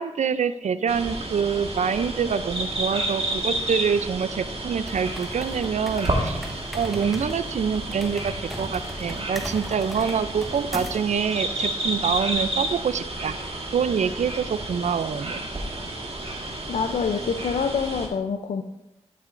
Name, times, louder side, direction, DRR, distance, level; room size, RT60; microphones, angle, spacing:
voice 1, 0.0-6.4 6.7-13.4 13.7-15.5, right 6 dB, 80° right, 13 dB, 0.4 m, -26 dB
sound 1, 0.9-18.1, right 1 dB, 55° right, 1.6 m, -31 dB
sound 2, 4.8-11.1, equal, ahead, 1.0 m, -38 dB
voice 2, 16.4-18.6, left 5 dB, 85° left, 6 dB, 0.5 m, -26 dB
12.5 x 6.8 x 2.5 m, 0.91 s
cardioid pair, 55°, 12 cm